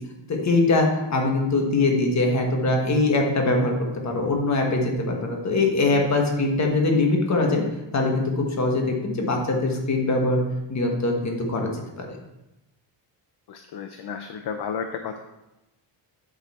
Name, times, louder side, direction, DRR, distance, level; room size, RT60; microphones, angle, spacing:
voice 1, 0.3-3.7 4.0-7.6 7.9-10.4 10.7-11.7 12.0-12.2, left 2 dB, 35° left, 1 dB, 1.4 m, -22 dB
voice 2, 13.5-15.2, left 6 dB, 55° left, 6 dB, 0.7 m, -32 dB
7.9 x 6.5 x 4.3 m, 0.97 s
cardioid pair, 160°, 48 cm